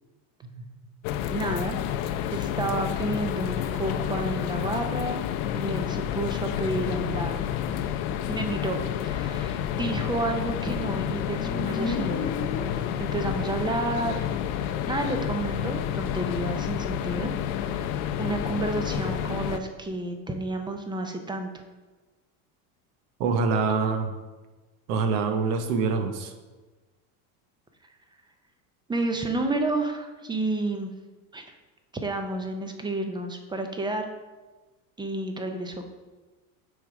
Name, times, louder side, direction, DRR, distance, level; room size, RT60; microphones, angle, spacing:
sound 1, 1.0-19.6, left 10 dB, 75° left, 0.6 m, -30 dB
voice 1, 1.3-1.8 2.3-5.3 5.5-7.4 8.3-12.3 13.0-14.3 14.6-17.3 17.6-17.9 18.2-21.5 28.9-30.9 31.3-31.4 31.9-34.1 35.0-35.9, right 2 dB, 10° right, 5 dB, 0.4 m, -30 dB
Motorcycle, 10.2-13.5, left 3 dB, 20° left, 0.8 m, -35 dB
voice 2, 23.2-24.1 24.9-26.3, right 4 dB, 85° right, 6 dB, 0.9 m, -25 dB
6.1 x 3.8 x 4.7 m, 1.2 s
supercardioid pair, 115°, 45 cm